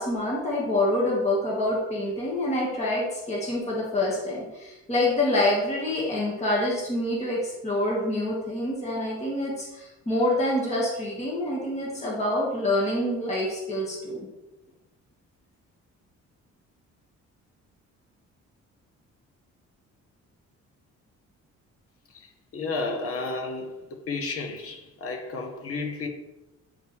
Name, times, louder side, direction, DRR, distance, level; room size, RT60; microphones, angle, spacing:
voice 1, 0.0-14.2, left 1 dB, 25° left, 1.6 m, -26 dB
voice 2, 22.1-26.1, left 3 dB, 50° left, 1.0 m, -32 dB
8.4 x 5.1 x 3.3 m
cardioid pair, 170°, 29 cm